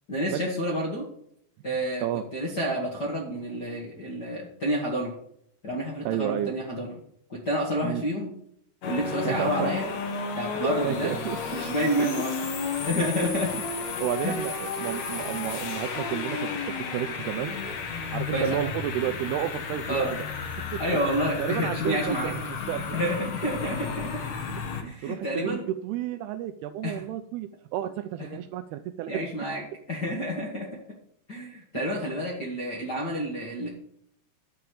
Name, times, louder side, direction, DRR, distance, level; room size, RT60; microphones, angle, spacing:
voice 1, 0.1-1.0 1.6-2.0 2.3-5.1 5.6-6.9 7.3-8.3 8.8-9.9 10.3-11.1 11.5-12.4 12.8-13.5 14.2-14.4 18.3-18.6 19.9-20.1 20.8-22.3 22.9-24.1 24.8-25.6 26.8-27.0 29.1-29.6 29.9-30.7 31.3-33.7, equal, 40° left, -3 dB, 1.4 m, -29 dB
voice 2, 6.1-6.5 7.8-8.1 9.3-9.7 10.6-11.4 14.0-17.6 18.1-20.3 20.7-21.0 21.4-23.0 24.7-29.1, right 12 dB, 85° right, 8 dB, 2.3 m, -31 dB
sound 1, 8.8-24.8, left 5 dB, 60° left, 1.9 m, -33 dB
11.0 x 5.7 x 8.5 m, 0.69 s
omnidirectional pair, 5.0 m